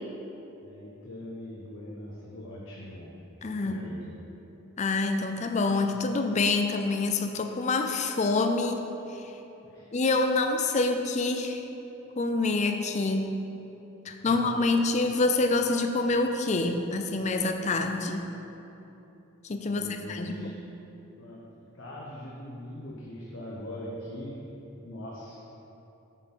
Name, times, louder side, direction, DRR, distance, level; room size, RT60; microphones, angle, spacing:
voice 1, 0.6-3.1 3.5-4.1 9.6-9.9 14.1-14.7 19.6-20.6 21.2-21.5 21.7-25.4, left 1 dB, 60° left, -4 dB, 0.9 m, -42 dB
voice 2, 3.4-3.8 4.8-8.8 9.1-9.2 9.9-11.7 12.2-13.3 14.1-18.3 19.4-20.6, left 3 dB, 35° left, 6 dB, 0.4 m, -26 dB
8.9 x 4.4 x 5.5 m, 3.0 s
head